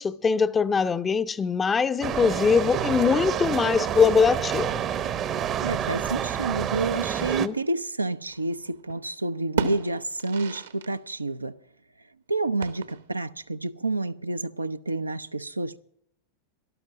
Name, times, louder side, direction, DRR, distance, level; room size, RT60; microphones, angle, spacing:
voice 1, 0.0-4.7 7.4-7.5, left 5 dB, 15° left, 0.6 m, -22 dB
sound 1, 2.0-7.5, right 9 dB, 30° right, 0.8 m, -28 dB
voice 2, 5.6-11.6 12.3-15.8, right 2 dB, 80° right, 0.5 m, -29 dB
sound 2, 8.3-9.0 9.3-11.0 11.2-11.3 12.6-13.3, right 5 dB, 65° right, 1.1 m, -33 dB
13.0 x 12.0 x 6.0 m
figure-of-eight pair, 90°, 0 cm